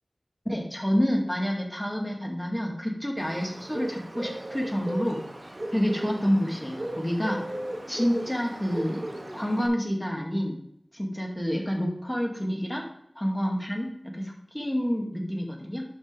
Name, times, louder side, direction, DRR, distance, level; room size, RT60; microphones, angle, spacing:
voice 1, 0.5-5.2 5.7-7.4 7.9-9.1 9.3-10.5 10.9-12.8 13.2-15.9, equal, 15° left, 0 dB, 2.2 m, -28 dB
Bird, 3.2-9.7, right 1 dB, 45° right, 1.6 m, -36 dB
11.5 x 5.7 x 3.4 m, 0.74 s
wide cardioid pair, 50°, 0 cm